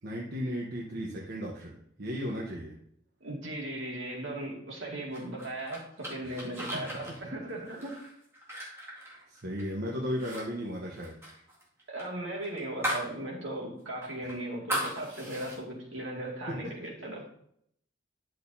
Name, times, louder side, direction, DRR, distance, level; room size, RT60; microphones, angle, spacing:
voice 1, 0.0-2.7 6.2-6.4 9.3-11.2 14.2-14.3, equal, 55° right, -3 dB, 1.1 m, -35 dB
voice 2, 3.2-8.0 11.9-17.2, right 1 dB, 75° right, -2 dB, 2.2 m, -37 dB
sound 1, 5.1-9.7 10.1-10.4 10.7-13.1 13.5-13.6 14.0-15.6, equal, 15° right, 2.2 m, -37 dB
10.5 x 6.5 x 2.7 m, 0.70 s
head